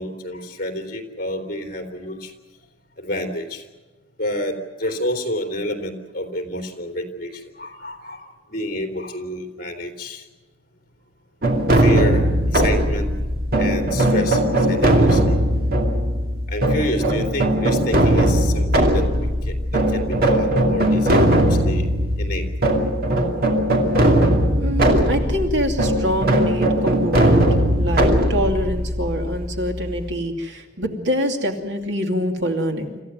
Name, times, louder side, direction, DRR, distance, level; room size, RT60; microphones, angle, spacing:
voice 1, 0.0-2.3 3.0-3.6 4.2-10.2 11.8-12.2 12.5-13.1 13.6-15.4 16.5-21.9 22.2-22.4 27.2-27.4, left 1 dB, 50° left, 4 dB, 3.2 m, -29 dB
sound 1, 11.4-30.1, right 1 dB, 55° right, 2.6 m, -19 dB
voice 2, 24.6-27.5 27.8-33.0, equal, 75° right, 3 dB, 2.7 m, -25 dB
26.5 x 14.5 x 9.4 m, 1.2 s
head